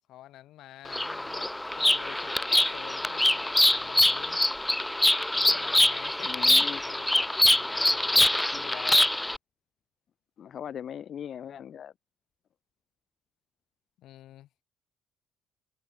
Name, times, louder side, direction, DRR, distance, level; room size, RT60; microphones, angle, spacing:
voice 1, 0.1-4.5 5.3-9.1 14.0-14.6, left 14 dB, 70° left, 4.5 m, -48 dB
Bird vocalization bird call bird song, 0.9-9.4, left 1 dB, 5° left, 0.4 m, -24 dB
voice 2, 6.2-6.8 10.4-11.9, left 9 dB, 45° left, 2.8 m, -39 dB
cardioid pair, 125°, 0 cm